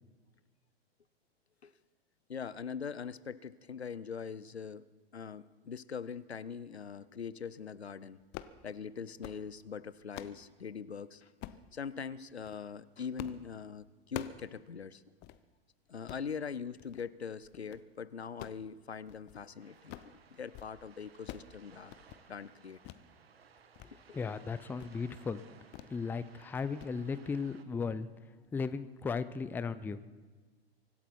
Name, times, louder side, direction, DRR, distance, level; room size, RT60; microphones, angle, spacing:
voice 1, 2.3-4.9 5.1-8.2 8.6-11.3 11.7-15.0 15.9-22.0 22.3-22.8 24.1-24.2 25.8-25.9, left 6 dB, 85° left, 18 dB, 0.6 m, -42 dB
sound 1, 8.2-8.6 9.0-9.4 9.9-10.4 11.4-11.7 12.3-12.6 13.2-13.4 13.7-14.5 14.8-14.9 15.2-15.4 15.9-16.3 16.8-17.1 17.4-17.9 18.2-19.5 19.7-20.2 20.4-20.7 21.0-21.5 21.8-22.2 22.8-23.0 23.4-23.9 24.2-24.4 24.8-25.0 25.7-26.0 26.3-26.5 26.8-26.9, left 13 dB, 35° left, 0.8 m, -47 dB
sound 2, 19.6-27.6, right 6 dB, 70° right, 1.4 m, -60 dB
voice 2, 24.1-25.4 25.9-28.1 28.5-30.0, left 5 dB, 5° left, 14 dB, 0.4 m, -36 dB
24.5 x 12.5 x 4.6 m, 1.4 s
figure-of-eight pair, 95°, 31 cm